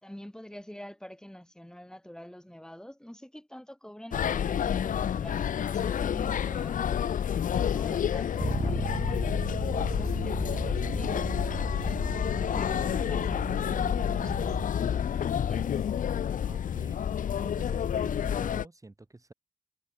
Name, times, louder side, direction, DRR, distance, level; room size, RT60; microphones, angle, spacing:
voice 1, 0.0-6.8 7.5-12.0 12.4-15.9, equal, 5° left, 3.8 m, -47 dB
sound 1, 4.1-18.6, left 9 dB, 90° left, 0.5 m, -29 dB
Bass guitar, 8.4-14.7, right 4 dB, 45° right, 1.4 m, -36 dB
voice 2, 16.5-17.0 17.4-19.3, right 2 dB, 25° right, 5.0 m, -48 dB
wide cardioid pair, 115°, 13 cm